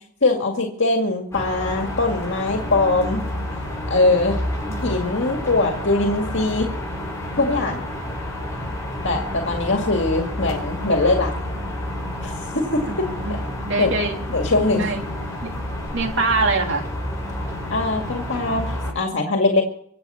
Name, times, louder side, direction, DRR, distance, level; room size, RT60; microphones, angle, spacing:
voice 1, 0.2-3.2 3.9-4.4 4.8-6.7 7.4-7.8 9.0-11.3 12.2-12.8 13.8-13.9 14.3-14.8 17.7-19.6, left 2 dB, 65° left, 2 dB, 2.1 m, -21 dB
sound 1, 1.3-18.9, left 1 dB, 15° left, 7.2 m, -29 dB
voice 2, 4.6-4.9 12.8-13.3 13.6-14.2 14.7-15.0 15.4-15.6 15.9-16.9, right 3 dB, 70° right, 3 dB, 2.9 m, -24 dB
24.5 x 8.3 x 5.6 m, 0.67 s
head